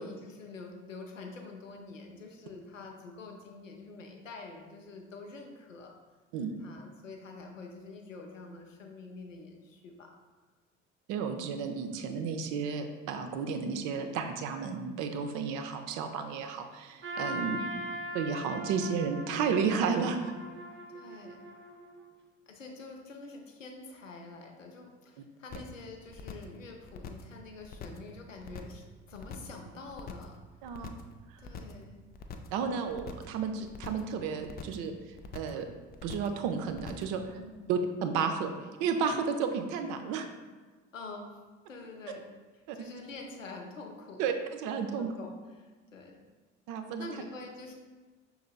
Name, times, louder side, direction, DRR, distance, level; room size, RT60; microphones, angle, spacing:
voice 1, 0.0-5.9 6.6-10.1 17.4-17.9 20.9-21.4 22.5-30.3 31.4-32.0 37.3-37.9 40.9-41.4 41.7-42.3 42.5-44.3 44.9-46.2 47.0-47.7, left 3 dB, 90° left, 2 dB, 0.6 m, -46 dB
voice 2, 11.1-17.6 18.1-20.3 30.6-30.9 32.5-34.9 35.3-35.7 36.0-37.2 37.7-38.5 38.8-40.3 42.7-42.9 44.2-44.3 44.6-45.1 46.7-47.1, right 6 dB, 55° right, 6 dB, 0.5 m, -32 dB
Trumpet, 17.0-22.1, right 1 dB, 30° right, 0.8 m, -40 dB
sound 1, 25.5-25.8 26.1-26.6 26.9-27.3 27.6-28.1 28.4-28.8 29.1-29.6 29.9-30.4 30.7-31.1 31.4-31.8 32.1-32.6 32.9-33.4 33.7-34.1 34.4-34.9 35.2-35.6 35.9-36.4 36.7-37.2, left 6 dB, 25° left, 0.3 m, -44 dB
5.4 x 3.9 x 2.2 m, 1.3 s
figure-of-eight pair, 55°, 38 cm